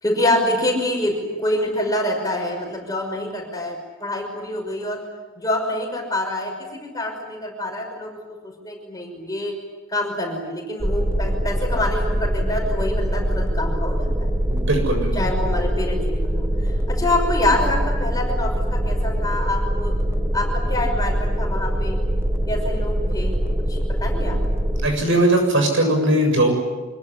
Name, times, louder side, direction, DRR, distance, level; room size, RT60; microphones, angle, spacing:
voice 1, 0.0-5.0 5.4-8.2 8.4-9.6 9.9-14.3 15.1-16.5 16.9-20.0 20.3-22.0 22.5-23.4 23.7-24.4, left 1 dB, 20° left, 2 dB, 5.9 m, -26 dB
sound 1, 10.8-24.9, equal, 15° right, 1.5 m, -23 dB
voice 2, 14.5-15.1 24.8-26.6, right 1 dB, 65° right, 4 dB, 7.2 m, -19 dB
25.5 x 22.5 x 9.8 m, 1.3 s
head